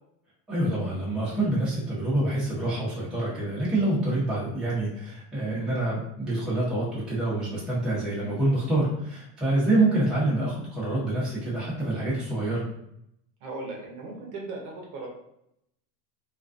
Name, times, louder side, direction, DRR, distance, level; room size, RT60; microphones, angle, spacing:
voice 1, 0.5-12.6, right 2 dB, ahead, -9 dB, 0.7 m, -26 dB
voice 2, 13.4-15.1, right 3 dB, 45° right, -1 dB, 0.7 m, -37 dB
2.4 x 2.2 x 2.4 m, 0.77 s
supercardioid pair, 135°, 49 cm